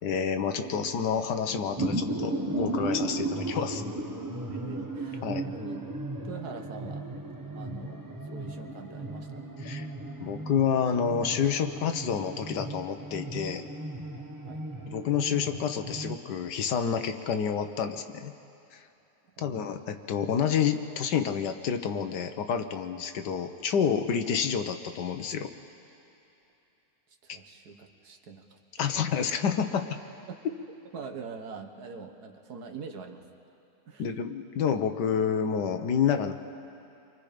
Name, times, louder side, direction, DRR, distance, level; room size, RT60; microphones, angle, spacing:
voice 1, 0.0-3.8 5.2-5.4 9.6-9.9 10.2-13.6 14.9-18.3 18.7-18.8 19.4-25.5 28.8-30.0 34.0-36.3, left 7 dB, 90° left, 7 dB, 1.6 m, -29 dB
voice 2, 0.6-0.9 3.3-3.4 4.5-5.8 6.2-7.1 7.5-8.0 8.3-9.5 14.4-14.7 19.4-19.8 27.2-29.2 30.3-30.4 30.9-33.2 33.9-34.1, right 5 dB, 70° right, 5 dB, 1.8 m, -44 dB
sound 1, 1.4-16.2, right 2 dB, 15° right, 0.9 m, -35 dB
29.5 x 23.5 x 5.1 m, 2.9 s
omnidirectional pair, 1.8 m